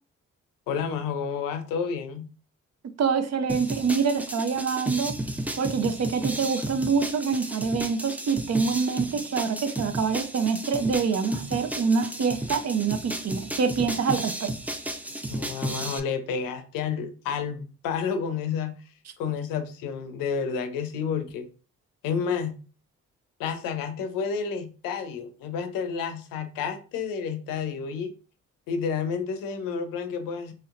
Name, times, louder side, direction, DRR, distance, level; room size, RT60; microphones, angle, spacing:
voice 1, 0.7-2.3 15.3-18.7 19.2-21.5 22.0-22.6 23.4-28.1 28.7-30.5, left 6 dB, 85° left, 0.6 m, -30 dB
voice 2, 3.0-5.1 5.6-14.5, right 5 dB, 50° right, 0.6 m, -26 dB
sound 1, 3.5-16.0, right 1 dB, 5° right, 0.4 m, -33 dB
3.1 x 2.8 x 2.4 m
supercardioid pair, 45°, 33 cm